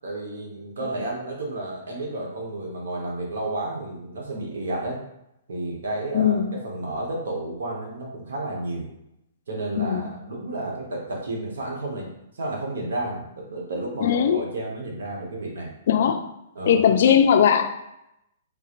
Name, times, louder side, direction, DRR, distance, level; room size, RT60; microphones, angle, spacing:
voice 1, 0.0-5.0 5.5-8.9 9.5-12.1 12.3-15.7 16.5-16.8, right 2 dB, 85° right, -1 dB, 1.1 m, -31 dB
voice 2, 6.1-6.6 9.8-10.0 14.0-14.4 15.9-16.2 16.7-17.7, left 8 dB, 55° left, 8 dB, 0.3 m, -19 dB
3.9 x 2.5 x 3.0 m, 0.84 s
hypercardioid pair, 165°, 0 cm